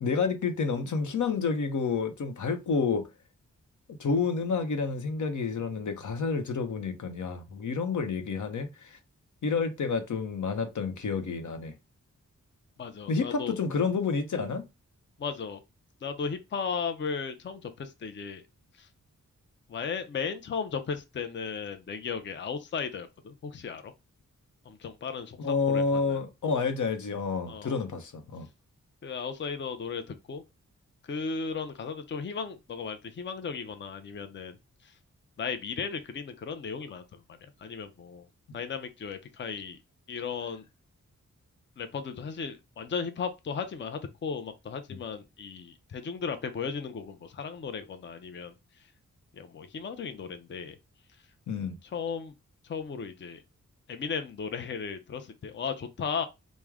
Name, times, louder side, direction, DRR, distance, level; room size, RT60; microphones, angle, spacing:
voice 1, 0.0-3.1 4.0-9.0 9.4-11.7 13.1-14.7 25.4-28.5 51.5-51.8, left 5 dB, 80° left, 0.7 m, -29 dB
voice 2, 12.8-13.6 15.2-15.6 16.0-18.4 18.8-18.9 19.7-23.9 24.7-26.2 27.5-27.8 29.0-30.4 31.0-34.6 34.8-35.0 35.4-38.3 38.5-39.8 40.1-40.6 41.8-48.5 49.3-50.8 51.9-52.3 52.6-53.4 53.9-56.2, left 5 dB, 40° left, 0.5 m, -36 dB
4.7 x 2.1 x 3.5 m
wide cardioid pair, 130°, 30 cm